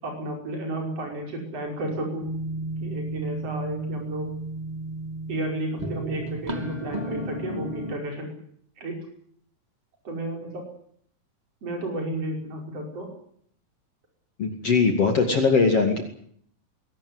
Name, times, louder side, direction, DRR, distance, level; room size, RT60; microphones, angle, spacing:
voice 1, 0.0-2.3 2.8-4.3 5.3-8.4 8.8-9.0 10.0-10.6 11.6-13.1, right 1 dB, 40° right, 2 dB, 6.4 m, -32 dB
sound 1, 2.2-7.9, right 1 dB, 15° right, 1.8 m, -33 dB
voice 2, 14.4-16.0, left 4 dB, 40° left, 4 dB, 3.0 m, -20 dB
22.5 x 18.0 x 9.6 m, 0.64 s
omnidirectional pair, 4.6 m